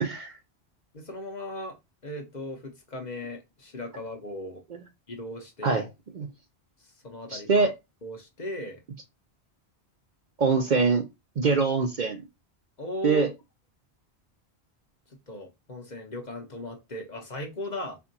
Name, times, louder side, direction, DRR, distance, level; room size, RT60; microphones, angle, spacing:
voice 1, 0.0-0.3 5.6-5.9 6.2-6.3 7.3-7.7 10.4-11.1 11.4-12.2 13.0-13.3, right 4 dB, 50° right, 0.6 m, -23 dB
voice 2, 0.9-1.8 2.0-4.6 5.1-5.9 7.0-7.7 8.0-8.8 12.8-13.3 15.3-18.0, left 1 dB, 45° left, 0.9 m, -37 dB
4.4 x 2.4 x 2.7 m
omnidirectional pair, 1.1 m